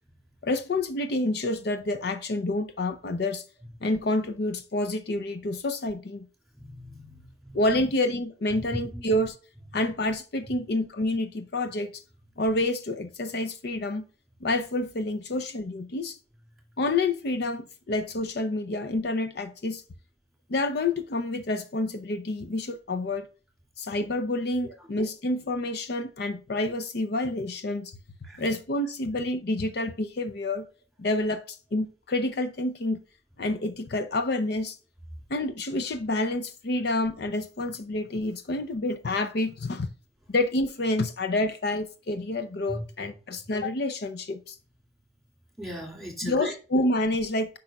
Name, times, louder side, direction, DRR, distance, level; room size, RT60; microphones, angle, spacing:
voice 1, 0.4-3.4 3.8-6.3 7.5-9.4 9.7-11.9 12.4-14.0 14.4-16.2 16.8-19.8 20.5-23.3 23.8-28.0 28.4-30.7 31.0-33.0 33.4-34.8 35.3-39.9 40.3-44.6 46.2-47.5, left 2 dB, 60° left, 0.6 m, -28 dB
voice 2, 6.7-7.8 8.5-8.6 8.9-9.0 24.6-24.7 28.2-28.4 42.7-42.8 45.6-46.5, equal, ahead, 2.4 m, -38 dB
8.5 x 5.4 x 2.3 m
head